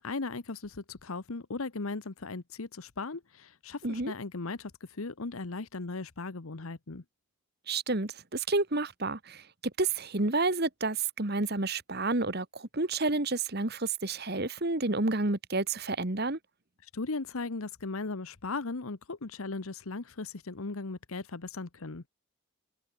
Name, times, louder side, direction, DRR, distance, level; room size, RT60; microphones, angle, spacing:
voice 1, 0.0-7.0 16.8-22.1, left 3 dB, 75° left, 1.0 m, -37 dB
voice 2, 3.8-4.1 7.7-9.4 9.8-16.4, right 3 dB, 45° right, 1.7 m, -30 dB
head